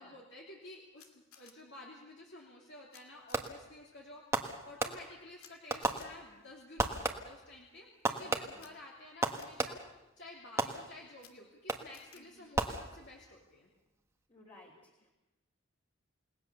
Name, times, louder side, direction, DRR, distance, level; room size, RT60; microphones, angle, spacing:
voice 1, 0.0-13.7, left 2 dB, 55° left, -2 dB, 2.9 m, -52 dB
Camera, 1.0-1.5 2.9-3.0 3.3-3.5 5.4-5.5 5.8-6.1 8.5-8.7 9.2-9.5 11.1-11.3 11.9-12.2, left 8 dB, 90° left, 2.7 m, -57 dB
Fireworks, 3.3-3.8 4.3-5.3 5.7-6.5 6.8-7.5 8.0-10.0 10.6-11.2 11.7-12.1 12.5-13.3, right 2 dB, 15° right, 1.3 m, -36 dB
voice 2, 8.1-8.6 12.1-12.4 14.3-15.1, left 2 dB, 25° left, -2 dB, 3.1 m, -59 dB
29.0 x 18.5 x 6.9 m, 0.99 s
head